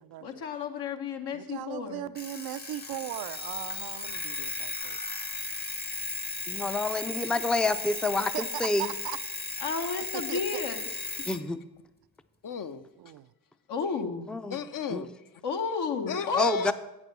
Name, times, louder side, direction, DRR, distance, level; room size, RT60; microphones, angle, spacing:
voice 1, 0.2-2.1 9.6-11.1 13.7-14.3 15.4-16.7, left 4 dB, 70° left, 4 dB, 1.2 m, -32 dB
voice 2, 1.3-5.0 8.3-9.2 10.1-10.6 13.0-13.3, right 13 dB, 65° right, 12 dB, 0.5 m, -38 dB
Alarm, 2.2-11.4, left 2 dB, 25° left, 0.9 m, -36 dB
voice 3, 6.5-8.9 11.3-11.6 14.3-14.6 14.9-15.1 16.4-16.7, left 2 dB, ahead, 11 dB, 0.5 m, -28 dB
voice 4, 12.4-12.9 14.5-15.4 16.1-16.7, left 6 dB, 50° left, 10 dB, 0.7 m, -35 dB
8.3 x 6.2 x 6.6 m, 0.96 s
supercardioid pair, 50°, 41 cm